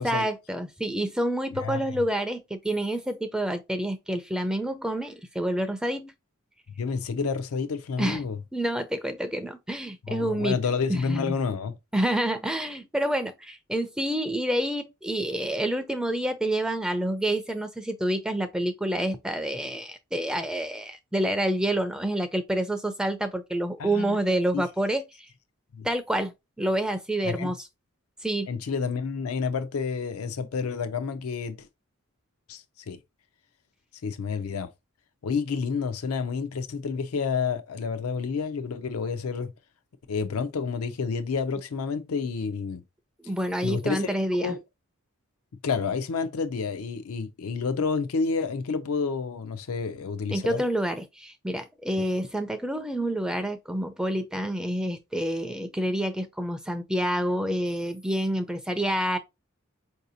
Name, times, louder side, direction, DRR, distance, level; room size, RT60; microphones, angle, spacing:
voice 1, 0.0-6.1 8.0-8.2 8.5-10.6 10.9-11.4 11.9-25.3 25.8-26.3 26.6-27.6 28.2-28.5 43.3-44.6 50.3-59.2, right 1 dB, 5° right, 0.3 m, -28 dB
voice 2, 1.5-1.9 6.8-8.4 10.1-11.8 23.8-24.2 24.5-24.6 25.7-25.9 27.2-27.5 28.5-31.7 32.5-33.0 34.0-34.7 35.2-39.5 40.1-42.8 43.6-44.1 44.4-44.6 45.6-50.6, left 5 dB, 85° left, 0.5 m, -29 dB
4.7 x 2.7 x 2.6 m
head